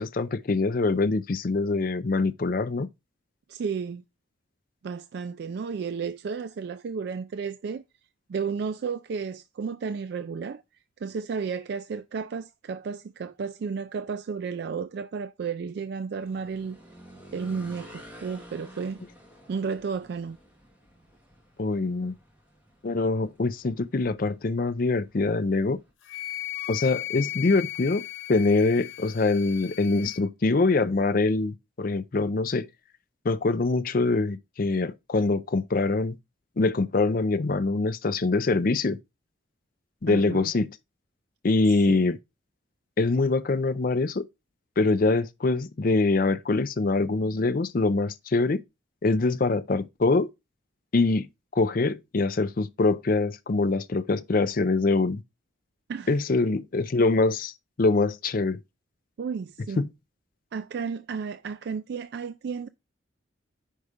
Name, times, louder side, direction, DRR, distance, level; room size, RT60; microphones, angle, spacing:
voice 1, 0.0-2.9 21.6-22.2 22.8-25.8 26.7-28.0 28.3-32.7 33.2-36.2 36.6-39.0 40.0-40.7 41.4-42.2 43.0-44.2 44.8-48.6 49.0-50.3 50.9-51.3 51.5-55.2 56.1-57.5 57.8-58.6 59.8-59.9, left 3 dB, 45° left, 0.5 m, -24 dB
voice 2, 3.5-4.0 4.8-7.8 8.3-10.6 11.0-16.8 17.3-19.0 19.5-20.4 40.1-40.5 41.9-42.1 55.9-56.1 59.2-59.8 60.5-62.7, right 5 dB, 55° right, 0.3 m, -33 dB
sound 1, 16.2-25.9, equal, 10° right, 2.1 m, -51 dB
Wind instrument woodwind instrument, 26.0-30.2, left 15 dB, 75° left, 0.8 m, -36 dB
5.5 x 4.7 x 5.0 m
head